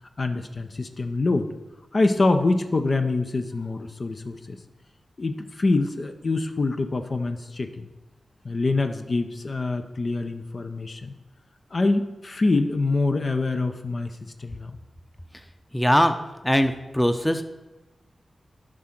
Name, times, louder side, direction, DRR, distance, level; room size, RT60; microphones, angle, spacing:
voice 1, 0.2-1.5 1.9-4.6 5.2-7.9 8.4-11.1 11.7-14.8, left 3 dB, 55° left, 7 dB, 0.7 m, -25 dB
voice 2, 15.7-16.1 16.4-17.4, equal, 10° left, 8 dB, 0.7 m, -21 dB
11.0 x 3.8 x 6.0 m, 1.1 s
cardioid pair, 45°, 0 cm